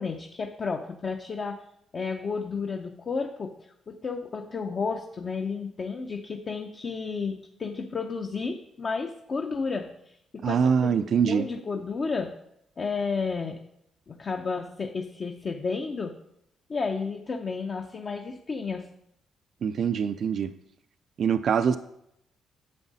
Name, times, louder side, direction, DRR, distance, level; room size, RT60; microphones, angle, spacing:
voice 1, 0.0-1.6 1.9-3.6 3.9-12.4 12.8-13.6 14.1-16.2 16.7-18.9, left 4 dB, 40° left, 4 dB, 0.7 m, -32 dB
voice 2, 10.4-11.5 19.6-20.5 21.2-21.8, right 7 dB, 60° right, 11 dB, 0.4 m, -24 dB
9.9 x 7.1 x 4.1 m, 0.79 s
cardioid pair, 90°, 0 cm